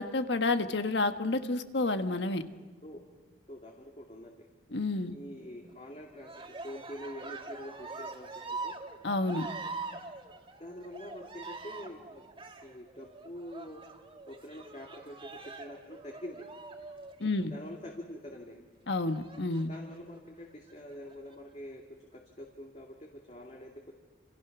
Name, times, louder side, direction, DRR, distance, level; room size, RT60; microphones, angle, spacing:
voice 1, 0.0-2.4 4.7-5.1 9.0-9.5 17.2-17.5 18.9-19.7, left 2 dB, 75° left, 8 dB, 1.4 m, -30 dB
voice 2, 3.5-4.5 5.1-8.7 10.6-12.3 12.6-13.8 14.3-16.5 17.5-18.6 19.7-21.8 22.1-23.9, equal, 35° left, 0 dB, 2.5 m, -45 dB
Cheering, 6.2-17.9 19.1-20.0 20.7-21.3, right 3 dB, 30° right, 2.0 m, -44 dB
29.0 x 28.0 x 6.1 m, 1.4 s
head